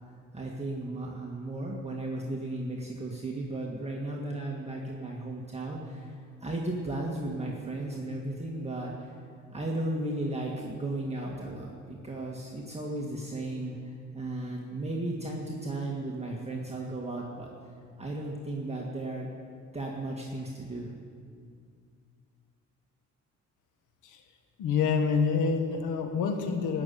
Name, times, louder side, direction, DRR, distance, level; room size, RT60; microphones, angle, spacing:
voice 1, 0.0-9.2 9.5-13.8 14.1-17.5 18.0-19.3 19.7-20.9, right 2 dB, 20° right, -2 dB, 1.9 m, -35 dB
voice 2, 24.6-26.8, left 5 dB, 90° left, 5 dB, 1.7 m, -27 dB
17.0 x 6.9 x 9.3 m, 2.3 s
cardioid pair, 90°, 30 cm